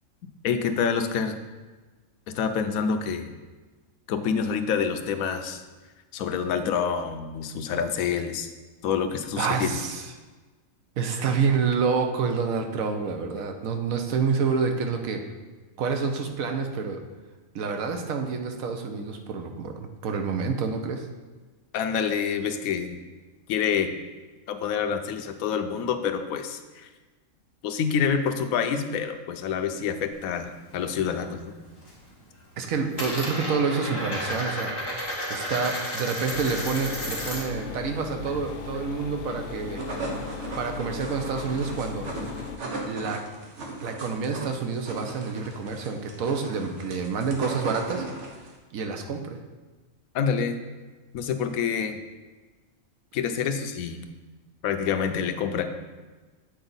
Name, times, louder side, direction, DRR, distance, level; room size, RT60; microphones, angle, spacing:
voice 1, 0.4-1.4 2.3-3.3 4.1-5.6 6.1-8.5 8.8-9.8 21.7-23.0 23.5-23.9 24.5-26.9 27.6-31.5 50.1-50.6 51.1-52.0 53.1-54.0 54.6-55.7, left 7 dB, 90° left, 8 dB, 1.0 m, -27 dB
voice 2, 9.4-10.0 11.0-15.2 15.8-17.0 17.5-21.1 32.6-34.7 35.1-39.8 40.6-42.1 42.8-43.2 43.8-48.0 48.7-49.4, right 5 dB, 85° right, 5 dB, 1.2 m, -28 dB
Coin (dropping), 30.1-31.3 31.6-32.1 32.3-37.6 37.9-39.6, equal, 20° left, 1.6 m, -33 dB
sound 1, 36.3-42.6, left 7 dB, 65° left, 0.6 m, -38 dB
sound 2, 39.5-48.6, right 2 dB, 60° right, 1.3 m, -37 dB
8.0 x 4.3 x 4.0 m, 1.3 s
omnidirectional pair, 1.4 m